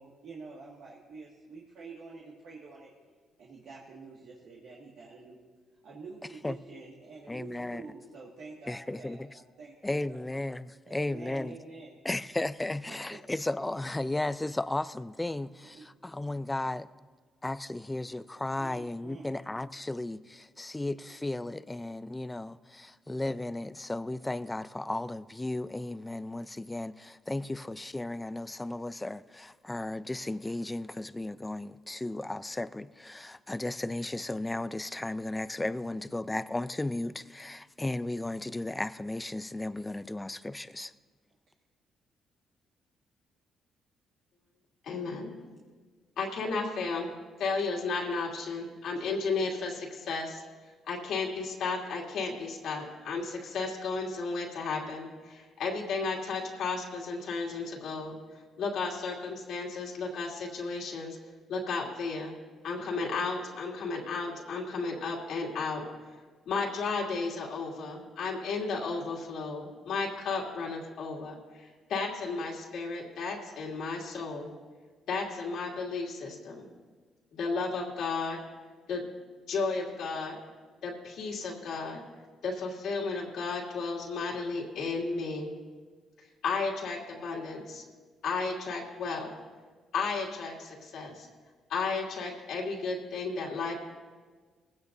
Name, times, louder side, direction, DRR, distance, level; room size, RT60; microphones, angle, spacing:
voice 1, 0.0-2.9 3.4-5.4 5.8-10.2 10.9-12.0 12.6-13.4 15.6-15.9 18.6-19.4, right 4 dB, 75° right, 1.9 m, -48 dB
voice 2, 7.3-7.8 8.7-9.3 9.8-11.6 12.0-16.9 17.4-40.9, left 2 dB, 15° left, 0.4 m, -35 dB
voice 3, 44.8-45.3 46.2-47.1 47.4-50.4 50.9-58.2 58.6-61.2 61.5-62.3 62.6-65.8 66.5-74.5 75.1-76.6 77.3-78.4 78.9-79.0 79.5-80.4 80.8-82.0 82.4-85.5 86.4-87.8 88.2-89.3 89.9-91.3 91.7-93.7, left 4 dB, 75° left, 2.5 m, -33 dB
20.0 x 16.0 x 2.7 m
cardioid pair, 90°, 0 cm